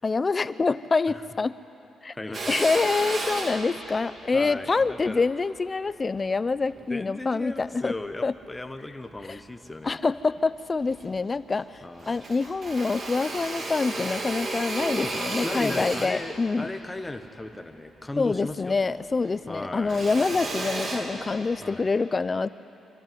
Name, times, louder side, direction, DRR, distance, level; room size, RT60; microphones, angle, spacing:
voice 1, 0.0-1.6 2.0-2.1 2.5-7.9 8.2-8.3 9.3-9.4 9.8-16.7 18.2-22.5, left 4 dB, 35° left, 16 dB, 0.6 m, -26 dB
voice 2, 2.1-2.6 4.3-5.2 6.9-10.0 11.8-12.2 15.0-18.9 19.5-20.1 20.3-20.6 21.6-21.9, left 2 dB, 15° left, 8 dB, 1.4 m, -37 dB
Drill, 2.3-6.9 7.4-8.6 9.1-10.0 10.4-10.5 10.7-11.7 12.0-18.7 19.0-21.8, right 2 dB, 50° right, 2.7 m, -34 dB
24.5 x 14.0 x 9.4 m, 2.9 s
cardioid pair, 70°, 0 cm